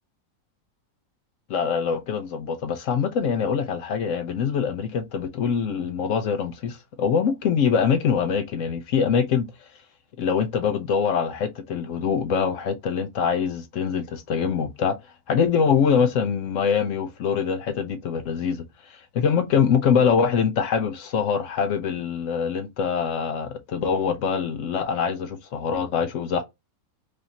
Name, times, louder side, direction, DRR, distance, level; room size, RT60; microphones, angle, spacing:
voice 1, 1.5-9.5 10.2-14.9 15.3-26.4, left 6 dB, 65° left, 0.9 m, -24 dB
4.9 x 2.6 x 2.8 m
omnidirectional pair, 1.5 m